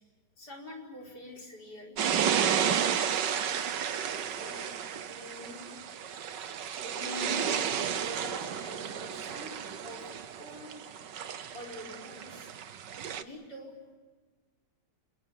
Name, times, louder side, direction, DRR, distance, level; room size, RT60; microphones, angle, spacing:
voice 1, 0.4-2.0 2.6-3.0 13.2-13.7, left 1 dB, 55° left, 0 dB, 5.7 m, -46 dB
sound 1, 2.0-13.2, right 8 dB, 65° right, 1.7 m, -32 dB
voice 2, 4.1-5.9 6.8-11.0 11.5-12.5, left 1 dB, 30° left, 2 dB, 5.4 m, -45 dB
29.5 x 22.5 x 7.4 m, 1.4 s
omnidirectional pair, 2.1 m